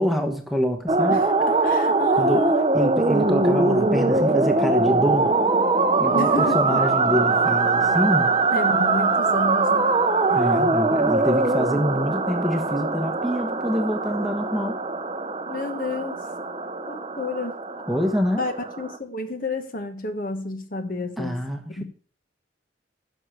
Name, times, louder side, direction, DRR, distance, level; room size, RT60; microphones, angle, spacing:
voice 1, 0.0-1.2 2.1-2.5 2.7-5.4 6.0-8.4 10.3-14.8 17.9-18.4 21.2-21.8, equal, ahead, 4 dB, 1.1 m, -25 dB
sound 1, 0.9-19.0, right 3 dB, 30° right, 0.8 m, -22 dB
voice 2, 1.1-2.7 6.1-6.8 8.5-9.9 15.5-16.2 16.9-17.6 18.4-21.4 21.7-21.8, left 2 dB, 45° left, 7 dB, 1.3 m, -30 dB
11.0 x 6.5 x 6.6 m, 0.43 s
head